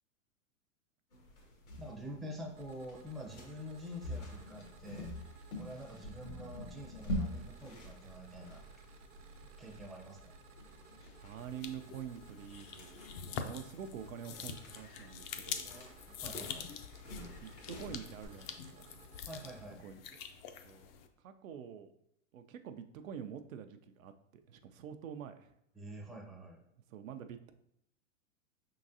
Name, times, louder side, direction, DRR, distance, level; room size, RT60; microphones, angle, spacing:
sound 1, 1.1-18.3, left 1 dB, 85° left, 1.5 m, -46 dB
voice 1, 1.8-5.1 5.6-8.6 9.6-10.3 15.6-16.7 19.2-19.8 25.7-26.6, equal, ahead, -3 dB, 0.5 m, -47 dB
sound 2, 2.6-19.7, right 4 dB, 55° right, 0.9 m, -59 dB
voice 2, 11.2-15.8 17.2-19.1 19.8-20.0 20.6-20.9 21.2-21.9 22.3-25.5 26.9-27.5, right 8 dB, 80° right, 8 dB, 0.6 m, -47 dB
sound 3, 11.4-21.1, left 7 dB, 45° left, 0.5 m, -46 dB
5.2 x 3.8 x 2.7 m, 0.77 s
hypercardioid pair, 115°, 40 cm